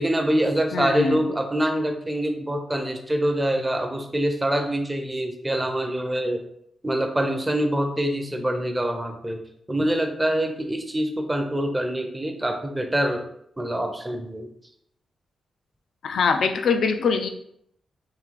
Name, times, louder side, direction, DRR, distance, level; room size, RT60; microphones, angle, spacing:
voice 1, 0.0-6.4 6.8-9.4 9.7-13.2 13.6-14.5, right 1 dB, 15° right, 4 dB, 0.5 m, -25 dB
voice 2, 0.7-1.2 16.0-17.3, left 5 dB, 70° left, 7 dB, 0.4 m, -23 dB
3.7 x 2.7 x 3.2 m, 0.73 s
cardioid pair, 115°, 0 cm